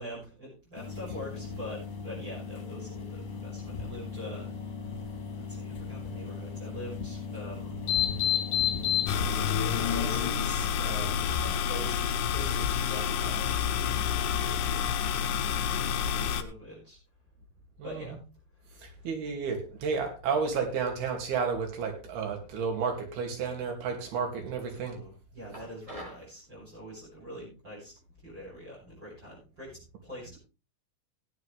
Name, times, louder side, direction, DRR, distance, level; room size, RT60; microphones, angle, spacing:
voice 1, 0.0-4.5 5.0-7.8 9.2-12.0 12.2-14.9 15.6-17.0 17.8-18.2 18.6-18.9 24.8-27.9 28.2-30.4, equal, 25° right, -7 dB, 8.2 m, -44 dB
sound 1, 0.8-9.5, left 8 dB, 50° left, 3.2 m, -33 dB
sound 2, 9.1-16.4, left 8 dB, 75° left, 2.0 m, -29 dB
voice 2, 17.8-18.2 18.8-25.0, right 5 dB, 80° right, 3 dB, 4.5 m, -32 dB
sound 3, 25.5-26.3, equal, 10° right, 6.1 m, -44 dB
17.5 x 9.9 x 3.3 m, 0.32 s
omnidirectional pair, 4.4 m